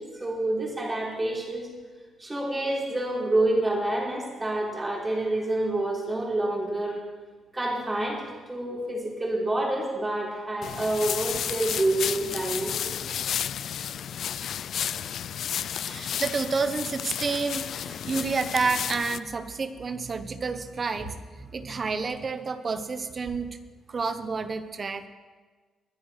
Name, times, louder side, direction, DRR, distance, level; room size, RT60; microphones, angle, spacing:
voice 1, 0.0-1.7 2.2-7.0 7.5-8.2 8.5-13.0, right 1 dB, 20° right, -3 dB, 3.6 m, -28 dB
sound 1, 10.6-19.2, left 9 dB, 65° left, 0.3 m, -32 dB
voice 2, 15.8-23.6 23.9-25.1, right 4 dB, 40° right, 10 dB, 0.9 m, -30 dB
21.5 x 10.0 x 3.3 m, 1.4 s
cardioid pair, 90°, 0 cm